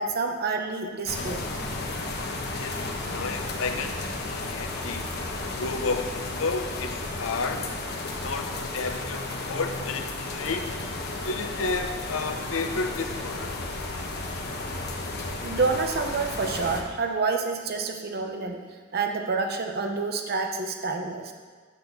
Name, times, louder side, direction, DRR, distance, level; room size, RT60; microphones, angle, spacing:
voice 1, 0.0-1.4 15.4-18.6 18.9-21.3, right 4 dB, 50° right, 4 dB, 0.7 m, -28 dB
sound 1, 1.1-16.8, left 2 dB, 55° left, 0.9 m, -33 dB
voice 2, 2.6-5.1 5.6-7.6 8.2-10.7 11.2-13.7, left 3 dB, 80° left, 6 dB, 0.7 m, -32 dB
8.2 x 4.1 x 6.7 m, 1.5 s
head